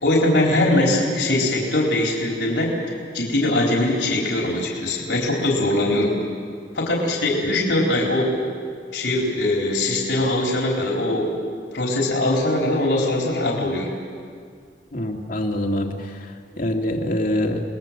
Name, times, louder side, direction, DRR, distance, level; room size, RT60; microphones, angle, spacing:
voice 1, 0.0-2.7 3.1-6.2 6.7-8.4 8.9-11.3 11.7-13.9, left 1 dB, 80° left, -2 dB, 4.1 m, -21 dB
voice 2, 14.9-16.2 16.6-17.6, left 1 dB, 50° left, 2 dB, 2.5 m, -24 dB
29.0 x 21.0 x 7.6 m, 2.1 s
head